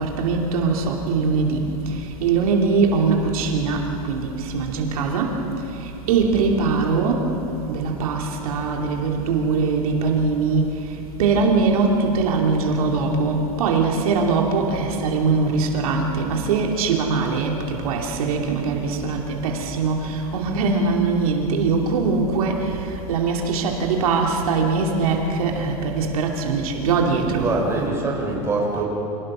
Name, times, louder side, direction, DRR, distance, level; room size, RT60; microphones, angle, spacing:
voice 1, 0.0-1.6 2.2-5.4 6.1-7.3 7.7-10.7 11.2-17.6 17.8-22.8 23.1-27.5, right 4 dB, 75° right, 1 dB, 2.8 m, -21 dB
voice 2, 27.3-28.8, right 3 dB, 15° right, -1 dB, 3.9 m, -24 dB
26.0 x 18.5 x 6.2 m, 2.8 s
supercardioid pair, 155°, 18 cm